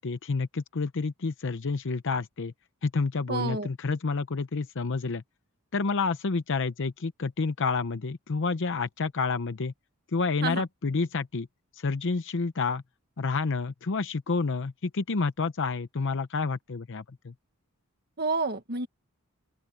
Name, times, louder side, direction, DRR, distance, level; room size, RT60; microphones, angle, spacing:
voice 1, 0.0-2.5 2.8-5.2 5.7-9.7 10.1-11.5 11.7-12.8 13.2-17.3, left 4 dB, 60° left, 0.7 m, -29 dB
voice 2, 3.3-3.7 10.4-10.6 18.2-18.9, right 3 dB, 50° right, 1.4 m, -29 dB
open air
head